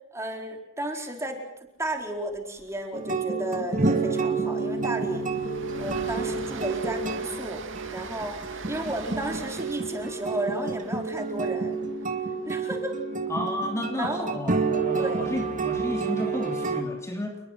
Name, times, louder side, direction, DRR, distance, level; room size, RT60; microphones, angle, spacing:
voice 1, 0.1-1.4 1.8-5.3 5.8-7.6 7.9-11.8 12.5-13.0 14.0-14.3 15.0-15.2, right 1 dB, 15° right, 2 dB, 4.3 m, -33 dB
Train, 2.3-2.6 2.9-3.0 3.4-13.6, right 4 dB, 65° right, 2.8 m, -42 dB
sound 1, 2.9-16.8, right 4 dB, 40° right, 2.6 m, -29 dB
voice 2, 13.3-17.4, left 1 dB, 15° left, 1 dB, 3.3 m, -32 dB
29.5 x 22.0 x 6.0 m, 0.92 s
head